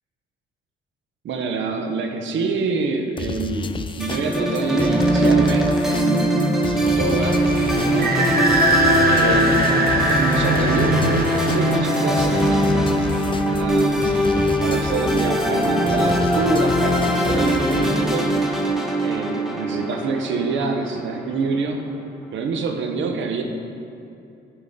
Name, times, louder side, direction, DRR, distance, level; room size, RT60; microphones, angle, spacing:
voice 1, 1.2-7.4 7.7-8.3 9.1-9.8 10.1-12.8 13.5-18.3 19.0-21.8 22.3-23.4, right 4 dB, 70° right, 4 dB, 0.9 m, -26 dB
sound 1, 3.2-17.9, left 4 dB, 25° left, 0.4 m, -32 dB
sound 2, 4.0-21.4, equal, ahead, 1.2 m, -21 dB
sound 3, 7.2-14.5, right 2 dB, 50° right, 1.1 m, -23 dB
14.0 x 5.1 x 3.7 m, 2.8 s
cardioid pair, 90°, 20 cm